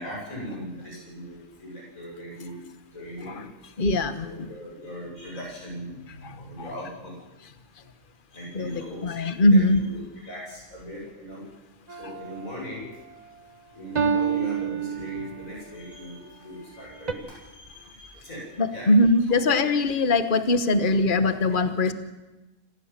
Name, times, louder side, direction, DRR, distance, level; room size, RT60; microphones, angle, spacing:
voice 1, 0.0-2.6 2.9-3.5 4.2-7.2 8.3-11.5 11.9-13.0 13.7-18.9 19.3-19.4, equal, 90° left, -3 dB, 8.6 m, -39 dB
voice 2, 3.8-4.5 6.2-6.7 8.5-9.8 12.0-12.1 18.6-21.9, left 2 dB, 40° left, 11 dB, 1.5 m, -22 dB
sound 1, 11.9-12.6 14.0-15.6 17.1-17.2, right 7 dB, 35° right, 1.1 m, -28 dB
27.0 x 15.5 x 7.6 m, 1.1 s
omnidirectional pair, 1.4 m